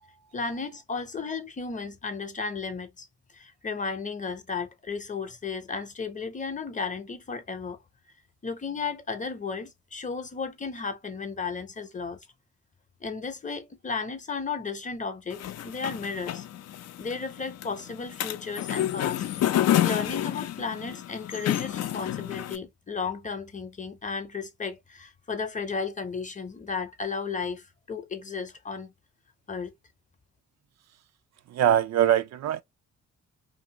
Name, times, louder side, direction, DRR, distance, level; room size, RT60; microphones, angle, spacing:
voice 1, 0.3-3.0 3.3-7.8 8.4-12.2 13.0-16.4 17.0-19.3 19.8-28.9 29.5-29.7, left 5 dB, 25° left, 0.7 m, -34 dB
sound 1, 15.3-22.6, left 12 dB, 60° left, 0.5 m, -29 dB
voice 2, 31.5-32.6, right 11 dB, 60° right, 0.4 m, -22 dB
2.7 x 2.5 x 2.7 m
cardioid pair, 90°, 30 cm